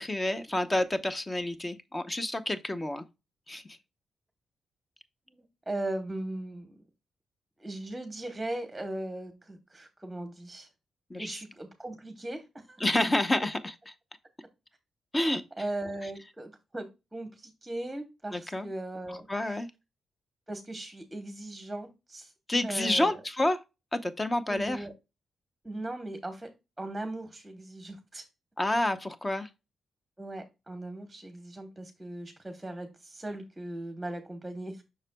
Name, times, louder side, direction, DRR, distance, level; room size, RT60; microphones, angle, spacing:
voice 1, 0.0-3.0 3.5-3.8 11.1-11.3 12.8-13.7 15.1-15.4 18.3-18.7 19.1-19.7 22.5-23.6 23.9-24.9 28.6-29.5, left 1 dB, 20° left, 0.7 m, -29 dB
voice 2, 5.3-6.7 7.6-10.7 11.2-12.8 15.6-19.6 20.5-22.3 22.6-23.2 24.5-24.9 25.6-26.5 26.8-28.2 29.3-29.4 30.2-34.8, right 1 dB, 10° right, 1.1 m, -38 dB
7.2 x 6.1 x 2.2 m
cardioid pair, 125°, 0 cm